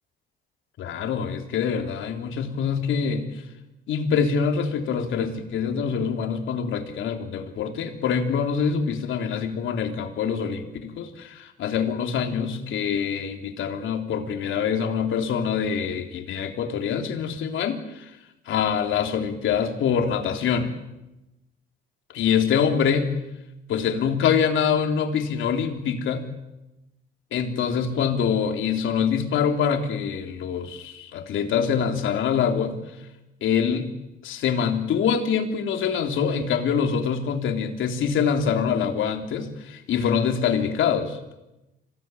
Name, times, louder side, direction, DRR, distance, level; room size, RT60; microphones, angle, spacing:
voice 1, 0.8-3.4 3.9-18.1 18.5-20.7 22.1-23.1 23.7-26.3 27.3-32.8 33.4-34.0 34.2-41.2, left 7 dB, 80° left, 4 dB, 3.4 m, -25 dB
26.5 x 17.5 x 9.1 m, 0.95 s
cardioid pair, 90°, 20 cm